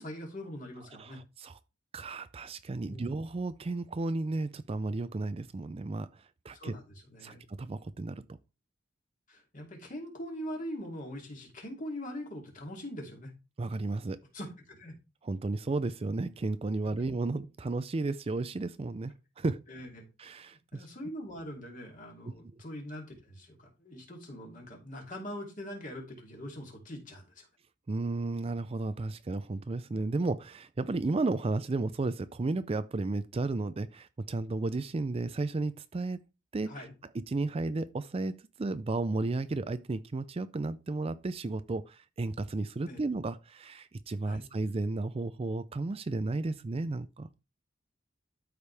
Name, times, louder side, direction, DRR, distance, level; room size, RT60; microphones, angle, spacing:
voice 1, 0.0-1.2 2.9-3.1 6.5-7.4 9.3-13.3 14.3-15.0 19.4-20.1 20.7-27.5 36.7-36.9 42.9-43.0 44.2-44.5, equal, 40° left, 2.8 m, -42 dB
voice 2, 0.9-1.5 1.9-6.7 7.2-8.2 13.6-14.2 15.2-19.6 20.2-20.8 22.2-22.3 27.9-36.2 36.5-36.7 37.3-47.3, right 3 dB, 30° right, 0.4 m, -33 dB
12.5 x 5.1 x 3.4 m
head